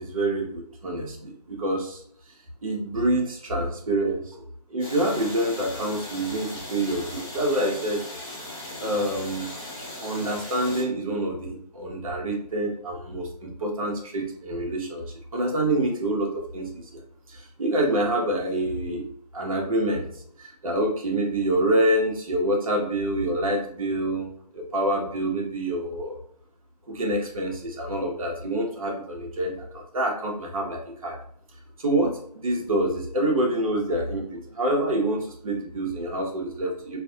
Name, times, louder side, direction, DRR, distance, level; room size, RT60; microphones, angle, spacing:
voice 1, 0.0-2.0 2.6-4.3 4.7-8.0 8.8-9.5 10.0-15.0 15.3-17.0 17.3-19.0 19.3-20.1 20.4-26.2 26.9-31.2 31.8-37.0, right 1 dB, 55° right, 0 dB, 0.9 m, -26 dB
sound 1, 4.8-10.8, left 1 dB, 10° left, 1.0 m, -38 dB
2.5 x 2.5 x 2.3 m, 0.64 s
figure-of-eight pair, 150°, 21 cm